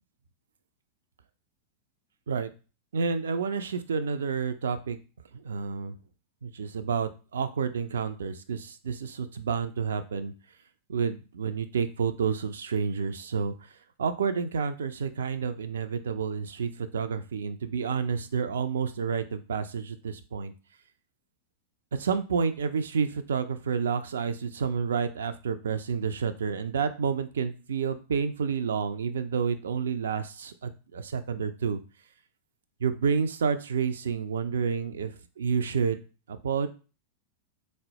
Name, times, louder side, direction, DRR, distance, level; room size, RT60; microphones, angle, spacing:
voice 1, 2.9-5.0 5.4-5.9 6.4-10.3 10.9-13.5 14.0-20.5 22.0-31.8 32.8-36.0 36.3-36.7, right 6 dB, 65° right, 10 dB, 0.3 m, -29 dB
3.8 x 2.1 x 2.7 m, 0.34 s
figure-of-eight pair, 90°, 0 cm